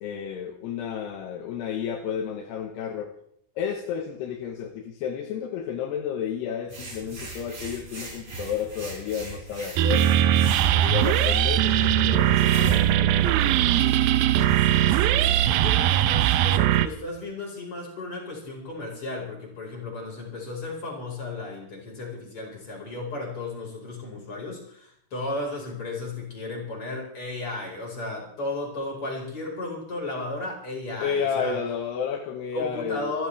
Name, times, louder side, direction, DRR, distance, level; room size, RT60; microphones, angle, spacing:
voice 1, 0.0-3.1 3.6-10.1 10.7-13.6 31.0-33.1, left 7 dB, 80° left, 3 dB, 3.3 m, -31 dB
sound 1, 6.7-17.2, right 4 dB, 40° right, 6.6 m, -38 dB
sound 2, 9.8-16.9, right 12 dB, 75° right, 2.2 m, -20 dB
voice 2, 14.6-31.6 32.5-33.3, left 2 dB, 30° left, -1 dB, 5.6 m, -34 dB
26.5 x 14.5 x 3.4 m, 0.66 s
omnidirectional pair, 4.8 m